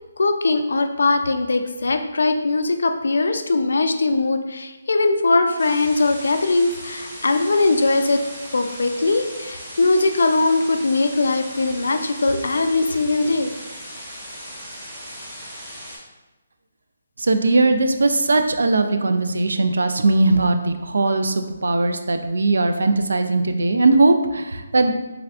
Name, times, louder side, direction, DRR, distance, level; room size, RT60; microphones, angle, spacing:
voice 1, 0.2-8.2 8.5-13.5, left 3 dB, 70° left, 7 dB, 0.3 m, -20 dB
sound 1, 5.6-16.0, equal, 5° right, 0.6 m, -37 dB
voice 2, 17.2-24.9, right 2 dB, 80° right, 7 dB, 0.3 m, -19 dB
3.5 x 3.3 x 2.4 m, 1.1 s
hypercardioid pair, 180°, 0 cm